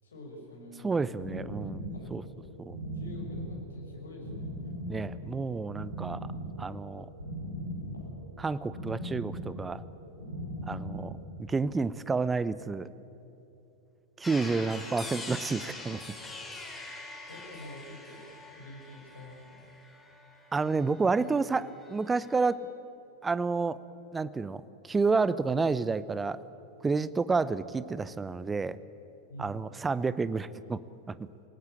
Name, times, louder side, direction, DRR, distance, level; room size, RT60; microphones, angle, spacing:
voice 1, 0.0-0.9 1.8-2.1 2.9-4.8 17.3-18.2 18.5-19.7 29.3-29.6, left 1 dB, 70° left, 1 dB, 6.1 m, -46 dB
voice 2, 0.8-1.8 2.1-2.2 2.6-2.8 4.9-6.3 6.6-7.1 8.4-9.8 10.6-12.9 14.2-16.0 20.5-22.6 23.2-23.8 24.1-26.4 26.8-28.8 29.4-30.8 31.1-31.2, right 4 dB, 15° right, 17 dB, 0.7 m, -30 dB
sound 1, 1.2-11.3, equal, 85° right, 4.7 m, -39 dB
sound 2, 14.2-21.4 21.7-22.5, left 2 dB, 10° left, 4.0 m, -44 dB
27.5 x 17.5 x 8.8 m, 2.9 s
figure-of-eight pair, 90°, 0 cm